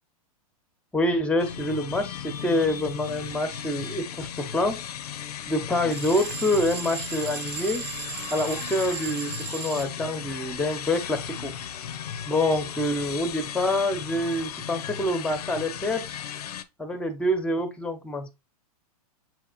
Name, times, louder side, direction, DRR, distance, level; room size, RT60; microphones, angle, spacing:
voice 1, 0.9-4.8 5.5-7.8 8.3-11.5 12.3-16.2 16.8-18.3, left 1 dB, 5° left, 0.8 m, -26 dB
sound 1, 1.4-16.6, left 9 dB, 85° left, 0.6 m, -36 dB
sound 2, 5.9-9.9, right 11 dB, 55° right, 0.8 m, -36 dB
7.3 x 2.8 x 2.5 m
hypercardioid pair, 130°, 19 cm